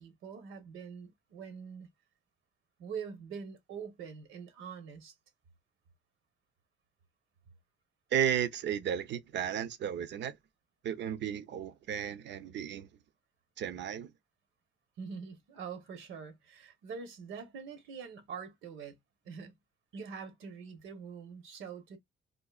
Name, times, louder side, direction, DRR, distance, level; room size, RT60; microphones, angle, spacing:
voice 1, 0.0-1.9 2.8-5.1 15.0-19.0 19.2-19.6 19.9-22.0, right 6 dB, 85° right, 1.0 m, -44 dB
voice 2, 8.1-10.4 10.8-12.9 13.6-14.1, right 9 dB, 65° right, 0.6 m, -33 dB
3.8 x 2.6 x 2.3 m
cardioid pair, 90°, 20 cm